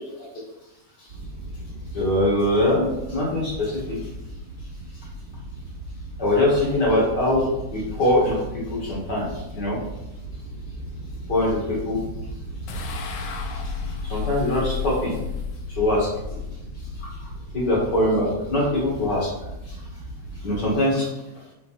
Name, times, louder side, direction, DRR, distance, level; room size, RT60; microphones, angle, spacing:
sound 1, 1.1-20.7, right 1 dB, 35° right, 1.0 m, -37 dB
voice 1, 1.9-4.0 6.2-7.5 7.7-8.3 8.7-9.3 9.5-9.8 11.3-12.0 14.1-15.1 15.8-16.1 17.5-19.3 20.4-21.1, left 1 dB, 35° left, -5 dB, 2.0 m, -22 dB
sound 2, 12.7-18.0, left 9 dB, 80° left, 1.9 m, -34 dB
5.7 x 4.4 x 5.8 m, 0.96 s
omnidirectional pair, 4.6 m